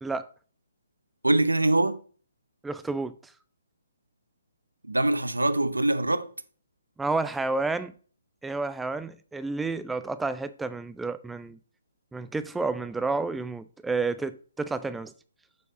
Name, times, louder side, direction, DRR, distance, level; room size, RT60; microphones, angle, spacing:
voice 1, 1.2-2.0 4.9-6.3, right 2 dB, 85° right, 0.8 m, -23 dB
voice 2, 2.6-3.1 7.0-7.9 8.4-11.6 12.1-15.1, right 3 dB, 5° right, 0.3 m, -30 dB
6.8 x 6.3 x 3.9 m
figure-of-eight pair, 135°, 0 cm